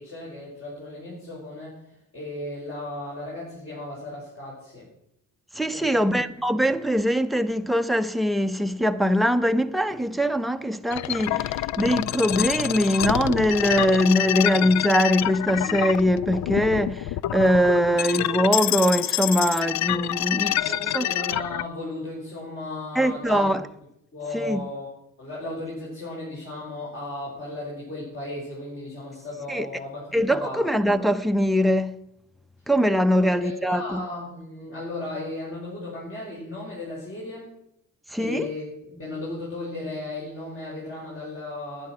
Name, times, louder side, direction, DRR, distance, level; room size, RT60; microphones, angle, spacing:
voice 1, 0.0-1.8 2.1-4.9 5.7-6.1 20.4-23.5 24.1-24.9 25.2-30.7 33.1-37.5 38.1-41.9, left 2 dB, 45° left, 5.4 m, -35 dB
voice 2, 5.5-21.1 23.0-23.6 24.3-24.6 29.5-29.7 30.1-32.0 32.7-34.0 38.1-38.5, equal, ahead, 0.7 m, -22 dB
sound 1, 10.9-21.7, left 13 dB, 65° left, 0.4 m, -27 dB
11.0 x 9.6 x 6.1 m
cardioid pair, 90°, 30 cm